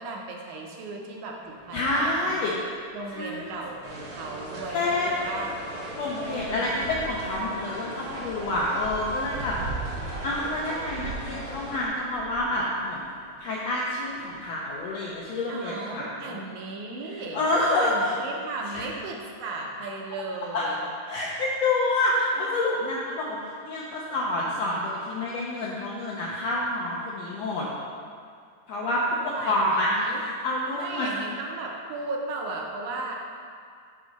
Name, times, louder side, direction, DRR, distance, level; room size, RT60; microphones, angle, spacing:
voice 1, 0.0-2.4 2.9-5.5 6.2-6.7 15.5-17.5 17.8-20.9 29.3-30.2 30.7-33.1, right 3 dB, 70° right, 0 dB, 2.0 m, -36 dB
sound 1, 1.4-15.2, right 3 dB, 85° right, 1.3 m, -43 dB
voice 2, 1.7-2.5 3.1-3.5 4.7-5.1 6.0-9.6 10.2-13.0 13.4-16.4 17.1-18.2 18.7-18.9 20.5-27.7 28.7-31.1, left 2 dB, 75° left, -5 dB, 1.6 m, -28 dB
sound 2, 3.8-11.8, right 1 dB, 55° right, 1.3 m, -39 dB
10.0 x 3.8 x 5.2 m, 2.2 s
omnidirectional pair, 3.9 m